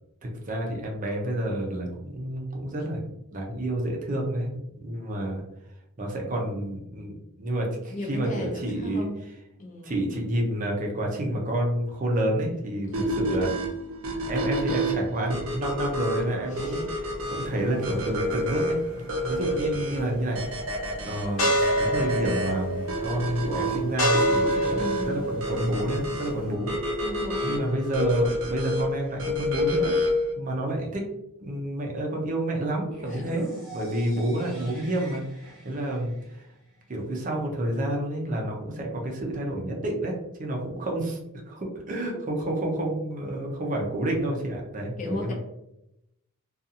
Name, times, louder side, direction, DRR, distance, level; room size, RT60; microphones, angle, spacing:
voice 1, 0.2-3.0 3.3-5.4 6.0-9.1 9.8-13.5 14.2-20.6 21.0-27.0 27.4-30.0 30.4-31.1 31.4-36.5 36.9-41.2 41.5-45.3, right 1 dB, 40° right, 0 dB, 0.5 m, -29 dB
voice 2, 7.9-9.2 9.6-10.0 12.9-13.2 16.5-16.9 24.7-25.4 27.0-27.7 33.1-33.2 45.0-45.3, left 1 dB, 40° left, 0 dB, 0.6 m, -36 dB
sound 1, 12.9-30.3, equal, 80° right, 0.5 m, -30 dB
sound 2, 17.2-26.5, equal, 80° left, 1.0 m, -29 dB
sound 3, 32.9-36.9, right 1 dB, ahead, 0.9 m, -45 dB
2.5 x 2.4 x 2.7 m, 0.86 s
head